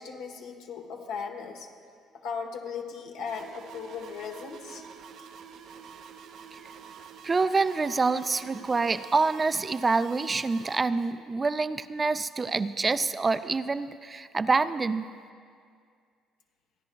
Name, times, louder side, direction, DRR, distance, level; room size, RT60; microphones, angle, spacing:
voice 1, 0.0-1.7 2.2-4.8, left 6 dB, 80° left, 2 dB, 1.2 m, -37 dB
sound 1, 3.2-10.8, right 6 dB, 70° right, 0.7 m, -47 dB
voice 2, 7.2-15.0, right 4 dB, 30° right, 12 dB, 0.4 m, -26 dB
26.5 x 10.0 x 2.3 m, 2.1 s
supercardioid pair, 65°, 0 cm